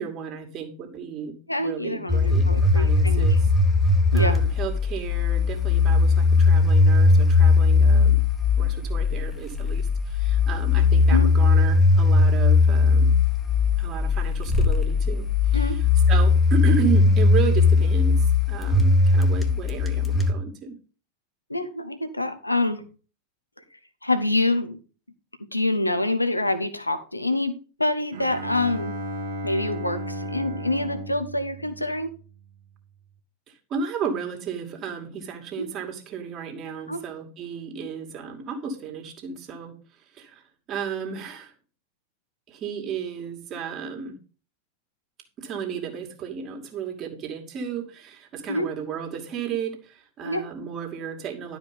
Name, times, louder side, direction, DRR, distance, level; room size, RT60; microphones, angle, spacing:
voice 1, 0.0-3.5 4.1-8.2 8.6-13.2 13.8-15.8 16.1-20.8 33.7-39.7 40.1-40.4 40.7-41.5 42.5-44.2 45.4-51.6, right 6 dB, 35° right, 3 dB, 2.4 m, -33 dB
voice 2, 1.5-3.3 4.1-4.4 11.1-11.3 15.5-15.8 21.5-22.9 24.0-24.8 25.5-27.5 27.8-29.0 29.4-32.1 35.6-35.7 36.9-37.0 48.5-48.7 50.2-50.4, left 2 dB, 85° left, 9 dB, 1.3 m, -26 dB
sound 1, 2.1-20.3, left 3 dB, 10° left, 1.5 m, -19 dB
Bowed string instrument, 28.1-32.5, right 1 dB, 60° right, 1.5 m, -34 dB
12.0 x 5.1 x 5.2 m, 0.35 s
figure-of-eight pair, 90°, 0 cm